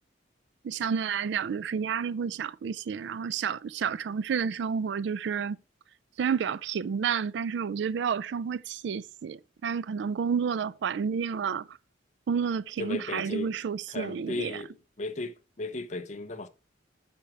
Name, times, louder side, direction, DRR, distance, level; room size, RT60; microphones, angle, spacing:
voice 1, 0.6-5.6 6.2-11.8 12.3-14.6, right 6 dB, 65° right, 0.3 m, -30 dB
voice 2, 12.8-13.6 13.9-16.5, left 2 dB, 40° left, 0.7 m, -36 dB
8.5 x 4.5 x 4.8 m
head